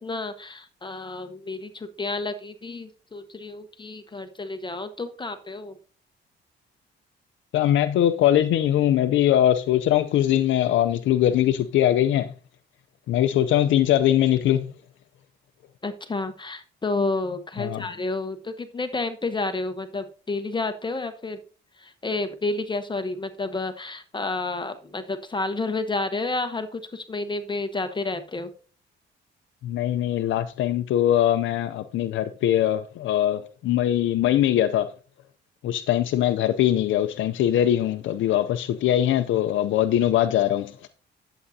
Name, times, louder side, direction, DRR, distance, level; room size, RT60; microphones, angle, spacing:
voice 1, 0.0-5.7 15.8-21.4 21.8-28.5, left 3 dB, 25° left, 1.0 m, -30 dB
voice 2, 7.5-12.3 13.1-14.7 17.6-17.8 29.6-34.9 35.6-40.9, left 11 dB, 75° left, 0.6 m, -22 dB
11.0 x 7.7 x 2.7 m
cardioid pair, 90°, 20 cm